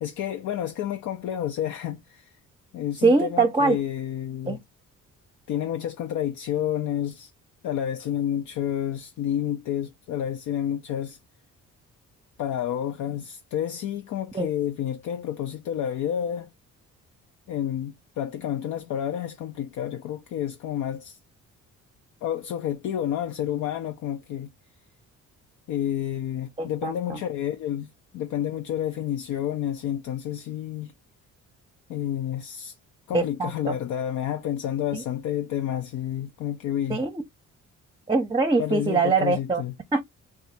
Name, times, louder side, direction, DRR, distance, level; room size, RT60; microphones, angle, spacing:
voice 1, 0.0-2.3 2.7-4.6 5.5-7.3 7.6-11.2 12.4-16.5 17.5-21.2 22.2-24.5 25.7-27.9 28.1-30.9 31.9-32.7 33.1-37.0 38.6-39.7, left 10 dB, 75° left, 0.6 m, -30 dB
voice 2, 3.0-3.8 4.4-4.6 14.3-14.5 26.6-27.2 33.1-33.8 34.9-35.0 36.9-37.1 38.1-39.6 39.9-40.0, right 3 dB, 15° right, 0.6 m, -23 dB
2.6 x 2.4 x 4.1 m
cardioid pair, 90°, 30 cm